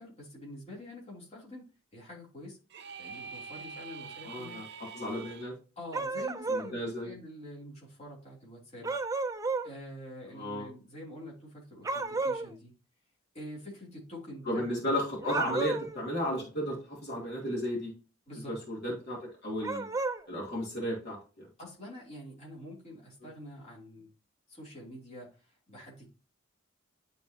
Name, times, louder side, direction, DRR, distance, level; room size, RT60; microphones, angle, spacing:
voice 1, 0.0-1.6 1.9-2.6 3.0-4.6 5.8-8.9 9.6-12.7 13.3-14.6 15.4-15.5 18.3-18.5 21.6-24.1 24.5-26.1, equal, 30° left, -4 dB, 3.0 m, -46 dB
sound 1, 2.7-5.5, right 5 dB, 55° right, 0.7 m, -45 dB
voice 2, 4.2-4.6 4.9-5.5 6.5-7.1 10.3-10.7 14.5-17.9 18.5-19.9 20.3-21.5, left 1 dB, 55° left, -3 dB, 2.9 m, -34 dB
sound 2, 5.9-6.7 8.8-9.7 11.8-12.5 15.2-16.0 19.6-20.2, right 3 dB, 15° right, 0.4 m, -32 dB
11.0 x 4.1 x 2.8 m, 0.34 s
head